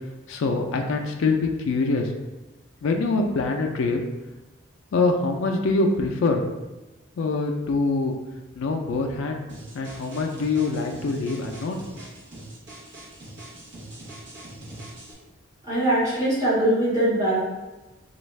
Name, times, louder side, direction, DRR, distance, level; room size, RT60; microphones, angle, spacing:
voice 1, 0.3-2.1 2.8-4.0 4.9-6.4 7.2-8.1 8.6-9.4 9.7-11.8, left 3 dB, 85° left, 3 dB, 0.4 m, -24 dB
sound 1, 9.5-15.1, right 1 dB, 55° right, 0.8 m, -42 dB
voice 2, 15.6-17.4, right 1 dB, 15° right, -12 dB, 1.4 m, -22 dB
3.3 x 2.3 x 3.1 m, 1.1 s
head